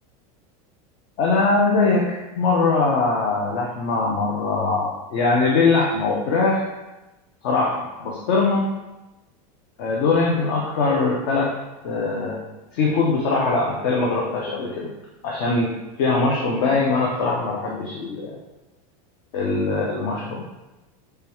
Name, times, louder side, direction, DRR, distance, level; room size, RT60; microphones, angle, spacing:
voice 1, 1.2-6.7 7.4-8.7 9.8-11.5 11.8-12.4 12.7-14.9 15.2-15.7 16.0-18.3 19.3-20.4, left 3 dB, 50° left, -2 dB, 0.7 m, -21 dB
6.4 x 2.3 x 3.0 m, 1.0 s
supercardioid pair, 165°, 19 cm